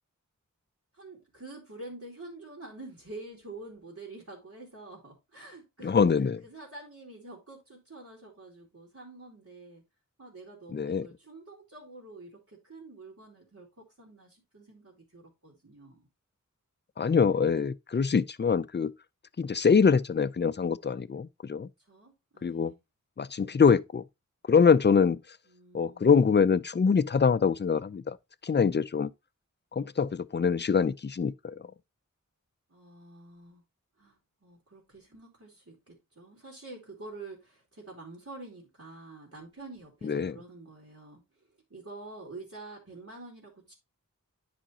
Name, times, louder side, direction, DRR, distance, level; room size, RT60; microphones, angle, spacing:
voice 1, 0.9-6.1 6.4-9.8 10.2-16.1 21.8-22.8 25.5-26.2 32.7-33.6 34.0-43.7, right 2 dB, 55° right, 2.8 m, -47 dB
voice 2, 5.8-6.4 10.7-11.1 17.0-18.9 19.4-21.7 22.4-22.7 23.2-24.0 24.5-25.2 25.7-28.2 28.4-29.1 29.7-31.6 40.0-40.3, left 6 dB, 35° left, 0.4 m, -24 dB
10.0 x 5.1 x 2.8 m
wide cardioid pair, 55°, 32 cm